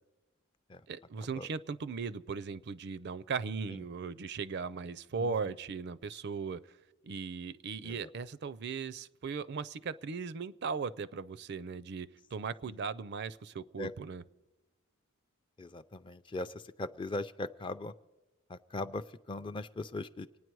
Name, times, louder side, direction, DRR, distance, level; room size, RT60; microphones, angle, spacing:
voice 1, 0.9-6.6 7.0-14.2, right 5 dB, 50° right, 18 dB, 0.4 m, -38 dB
voice 2, 15.6-17.9 18.5-20.3, left 2 dB, 20° left, 12 dB, 0.4 m, -40 dB
26.5 x 9.5 x 4.7 m, 1.1 s
head